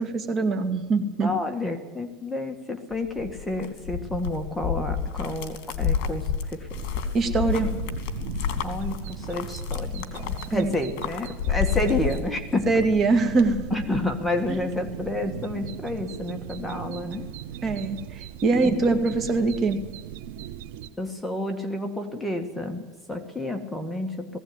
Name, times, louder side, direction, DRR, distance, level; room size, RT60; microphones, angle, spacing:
voice 1, 0.0-1.3 7.1-7.7 10.5-10.7 12.7-13.8 14.5-14.6 17.6-19.8, right 3 dB, 30° right, 6 dB, 2.2 m, -23 dB
voice 2, 1.2-6.7 8.6-12.7 13.7-17.3 18.6-18.8 21.0-24.4, left 2 dB, 5° left, 4 dB, 1.7 m, -30 dB
sound 1, 2.9-12.8 13.2-14.1, left 7 dB, 65° left, 3.0 m, -30 dB
sound 2, 6.7-20.9, right 10 dB, 80° right, 1.3 m, -38 dB
19.0 x 16.5 x 9.6 m, 1.1 s
supercardioid pair, 150°, 0 cm